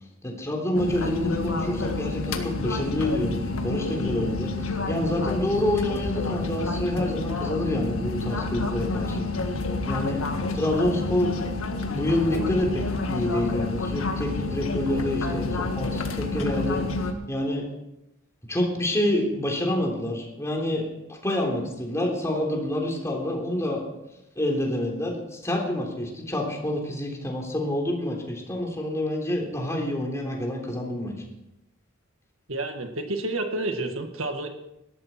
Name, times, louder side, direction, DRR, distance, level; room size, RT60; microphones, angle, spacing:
voice 1, 0.2-9.3 9.9-10.2 10.5-11.4 11.9-16.8 17.3-17.7 18.5-20.9 21.2-23.8 24.4-31.1, left 1 dB, 15° left, 0 dB, 3.4 m, -27 dB
sound 1, 0.7-17.1, left 3 dB, 85° left, 1.7 m, -29 dB
voice 2, 32.5-34.5, right 2 dB, 75° right, 5 dB, 1.9 m, -29 dB
18.5 x 13.5 x 4.5 m, 0.90 s
head